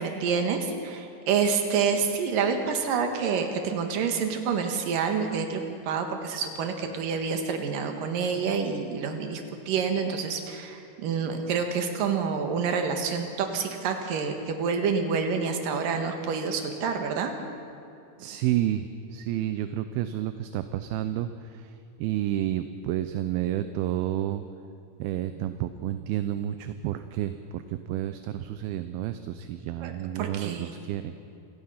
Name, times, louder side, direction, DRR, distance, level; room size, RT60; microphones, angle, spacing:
voice 1, 0.0-17.3 29.8-29.9 30.2-30.7, right 6 dB, 65° right, 5 dB, 3.1 m, -28 dB
voice 2, 18.2-21.7 22.0-24.4 25.0-31.1, right 12 dB, 80° right, 10 dB, 2.5 m, -30 dB
27.5 x 18.5 x 5.7 m, 2.7 s
omnidirectional pair, 4.6 m